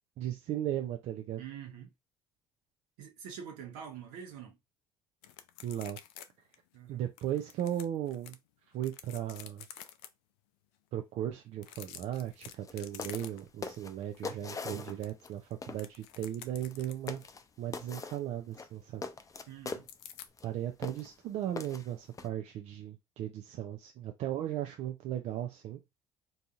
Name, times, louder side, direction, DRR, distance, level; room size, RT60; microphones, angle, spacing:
voice 1, 0.2-1.4 5.6-6.0 6.9-8.4 8.7-9.7 10.9-17.2 17.6-19.0 20.4-25.8, right 11 dB, 60° right, 0.5 m, -36 dB
voice 2, 1.4-1.9 3.0-4.6 6.7-7.0 19.5-19.9, right 8 dB, 75° right, 1.0 m, -45 dB
sound 1, 5.2-6.3 6.5-6.6 7.2-8.3 8.8-10.1 11.5-13.6 14.0-14.2 14.6-17.3 19.9-20.3, left 10 dB, 75° left, 0.4 m, -49 dB
sound 2, 12.6-12.7 13.0-13.3 13.6-15.3 15.6-15.8 16.6-16.7 17.1-17.4 17.7-18.2 18.5-19.9 20.4-20.5 20.8-21.1 21.6-22.3, left 4 dB, 25° left, 0.5 m, -41 dB
3.9 x 2.7 x 2.4 m
hypercardioid pair, 60°, 13 cm